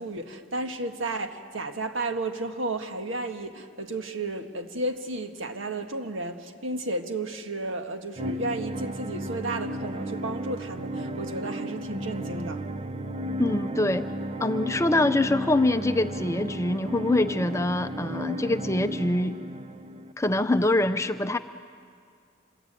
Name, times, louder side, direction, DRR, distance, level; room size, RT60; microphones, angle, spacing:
voice 1, 0.0-12.6, right 2 dB, 75° right, 6 dB, 1.7 m, -33 dB
sound 1, 8.2-20.1, equal, 30° right, 0.7 m, -34 dB
voice 2, 13.4-14.1 14.4-19.4 20.2-21.4, left 2 dB, 15° left, 9 dB, 0.6 m, -24 dB
26.5 x 22.0 x 8.9 m, 2.2 s
head